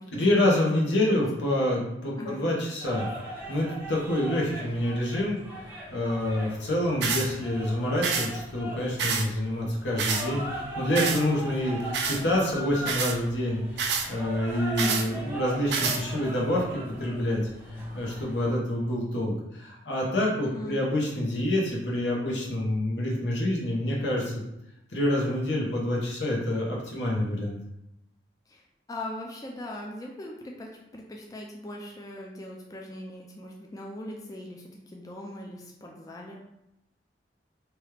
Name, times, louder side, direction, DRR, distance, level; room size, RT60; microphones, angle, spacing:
voice 1, 0.1-3.1 3.5-13.8 14.1-17.4 17.7-24.3 24.9-27.6, left 1 dB, 80° left, -3 dB, 0.9 m, -27 dB
sound 1, 2.8-18.6, equal, 10° right, 0.6 m, -40 dB
sound 2, 7.0-7.3 8.0-8.3 9.0-9.3 10.0-10.2 11.0-11.2 11.9-12.2 12.8-13.2 13.8-14.1 14.8-15.1 15.7-16.0, right 5 dB, 70° right, 0.4 m, -27 dB
voice 2, 14.8-15.1 20.4-20.8 28.5-36.4, left 1 dB, 20° left, -1 dB, 0.3 m, -40 dB
3.0 x 2.3 x 3.2 m, 0.86 s
head